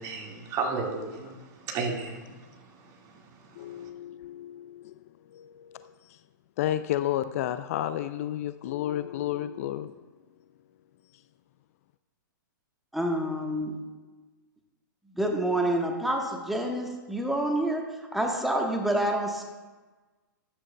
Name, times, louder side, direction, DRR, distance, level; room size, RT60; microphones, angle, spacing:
voice 1, 0.0-3.9, right 4 dB, 30° right, 0 dB, 1.9 m, -35 dB
voice 2, 3.6-4.9 5.3-5.9 6.6-9.9, left 12 dB, 45° left, 12 dB, 0.4 m, -31 dB
voice 3, 12.9-13.7 15.2-17.8 18.1-19.4, right 1 dB, ahead, 1 dB, 1.2 m, -27 dB
13.5 x 9.8 x 2.2 m, 1.3 s
figure-of-eight pair, 115°, 11 cm